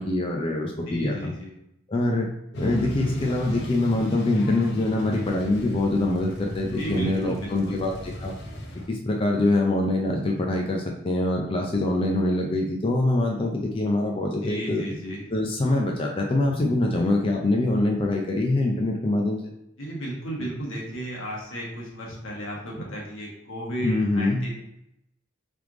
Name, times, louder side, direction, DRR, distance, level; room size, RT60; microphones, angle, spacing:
voice 1, 0.0-1.3 1.9-2.3 2.6-7.9 8.2-8.3 8.9-14.8 15.3-19.5 23.8-24.4, left 2 dB, 25° left, 0 dB, 0.4 m, -24 dB
voice 2, 0.9-1.5 6.8-7.8 14.4-15.2 19.8-24.6, equal, 80° left, -3 dB, 1.3 m, -34 dB
sound 1, 2.5-8.9, left 1 dB, 65° left, 0.7 m, -35 dB
3.4 x 3.4 x 3.6 m, 0.81 s
head